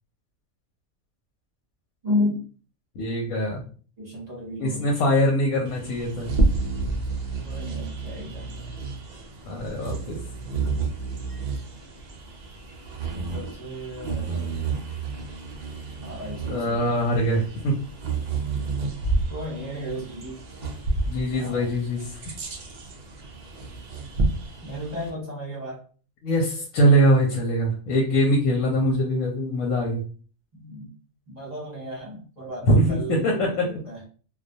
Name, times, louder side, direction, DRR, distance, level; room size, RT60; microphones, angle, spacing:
voice 1, 2.0-2.4 4.0-4.9 7.4-8.8 13.1-14.8 16.0-16.9 19.3-20.4 21.3-21.7 24.6-25.8 30.5-30.9 31.3-34.0, left 1 dB, 40° right, -4 dB, 0.8 m, -33 dB
voice 2, 3.0-3.7 4.6-6.3 9.5-10.2 16.5-17.8 21.1-22.2 26.2-30.0 32.7-33.7, equal, 85° left, -1 dB, 1.0 m, -22 dB
Bird vocalization bird call bird song, 5.6-25.1, right 3 dB, 80° right, 0.4 m, -30 dB
2.2 x 2.2 x 2.6 m, 0.39 s
omnidirectional pair, 1.3 m